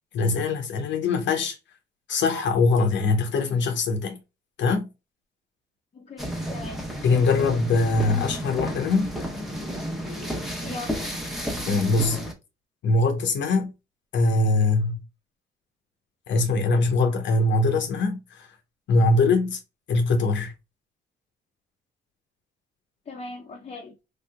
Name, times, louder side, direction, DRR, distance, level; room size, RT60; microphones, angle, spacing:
voice 1, 0.1-1.6 2.1-4.2 4.6-4.9 7.0-9.1 11.7-12.2 12.8-13.7 14.1-15.0 16.3-18.5 18.9-19.6 19.9-20.5, left 3 dB, 70° left, 0.7 m, -22 dB
voice 2, 5.9-6.9 10.6-11.1 23.1-24.0, left 3 dB, 35° left, 0.6 m, -39 dB
sound 1, 6.2-12.3, equal, ahead, 0.9 m, -32 dB
3.3 x 2.8 x 2.2 m
cardioid pair, 90°, 20 cm